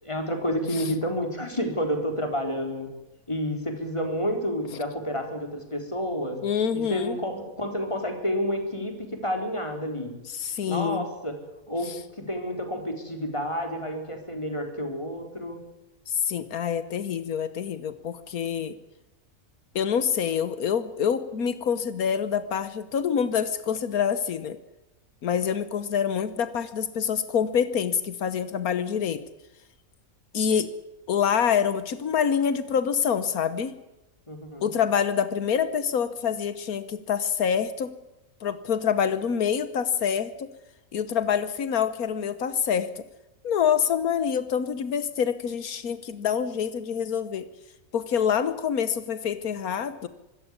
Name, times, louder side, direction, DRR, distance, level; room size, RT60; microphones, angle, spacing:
voice 1, 0.0-2.9 3.3-6.4 6.7-10.1 10.7-11.3 11.7-11.9 12.1-15.6 34.3-34.7, equal, 20° left, 4 dB, 4.2 m, -30 dB
voice 2, 6.4-7.2 10.3-11.1 11.8-12.0 16.1-18.8 19.7-24.6 25.2-29.2 30.3-30.7 31.1-33.7 34.6-37.9 38.4-40.5 40.9-43.0 43.4-47.5 47.9-50.1, left 7 dB, 85° left, 12 dB, 1.6 m, -26 dB
25.0 x 14.5 x 9.7 m, 0.99 s
omnidirectional pair, 1.5 m